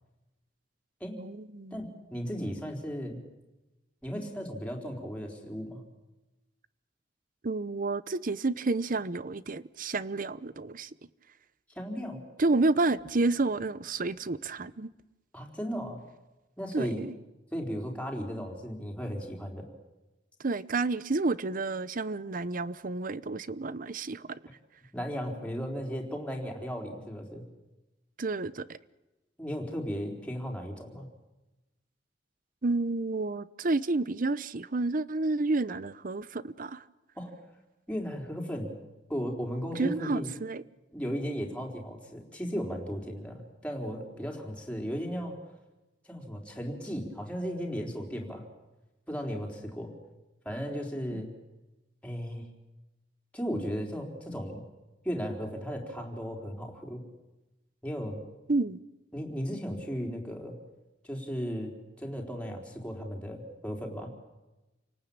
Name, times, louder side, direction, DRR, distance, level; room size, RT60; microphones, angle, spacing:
voice 1, 1.2-1.8 7.4-10.9 12.4-14.9 16.7-17.1 20.4-24.4 28.2-28.8 32.6-36.8 39.7-40.6 51.1-51.2 58.5-58.8, right 3 dB, 50° right, 0.8 m, -30 dB
voice 2, 1.7-3.2 4.0-5.8 11.7-12.2 15.3-16.0 16.6-17.1 17.5-19.7 24.9-27.4 29.4-31.1 37.2-37.3 37.9-38.7 39.1-40.3 40.9-45.4 46.0-48.4 49.1-49.9 50.4-51.3 52.0-52.5 53.3-54.6 55.0-57.0 57.8-58.2 59.1-60.6 61.0-61.7 62.0-64.1, equal, 5° left, 4.2 m, -35 dB
29.0 x 18.5 x 8.8 m
head